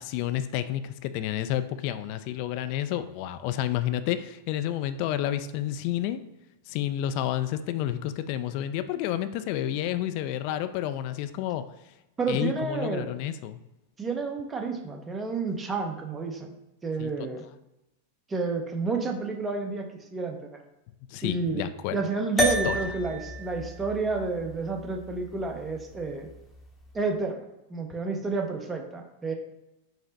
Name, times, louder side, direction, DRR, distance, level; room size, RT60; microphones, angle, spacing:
voice 1, 0.0-6.2 6.7-11.6 12.3-13.6 17.0-17.1 21.1-22.0 22.6-22.8, left 12 dB, 50° left, 11 dB, 0.3 m, -30 dB
voice 2, 12.2-13.1 14.0-16.6 16.8-17.4 18.3-20.6 21.2-26.3 26.9-27.4 27.7-29.3, right 4 dB, 20° right, 3 dB, 0.7 m, -30 dB
sound 1, 22.4-27.0, equal, 10° left, 0.9 m, -32 dB
5.2 x 2.0 x 4.0 m, 0.95 s
hypercardioid pair, 95°, 0 cm